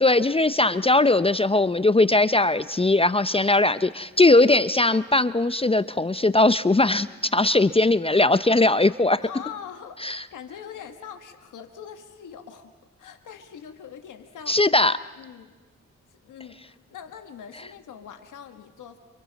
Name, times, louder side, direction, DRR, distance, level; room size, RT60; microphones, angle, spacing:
voice 1, 0.0-9.2 10.0-10.2 14.5-15.0, left 2 dB, 20° left, 14 dB, 0.6 m, -20 dB
voice 2, 9.2-12.7 13.0-14.6 15.2-15.5 16.1-19.0, left 8 dB, 85° left, 5 dB, 1.6 m, -42 dB
29.0 x 25.5 x 4.1 m, 1.3 s
supercardioid pair, 40°, 30 cm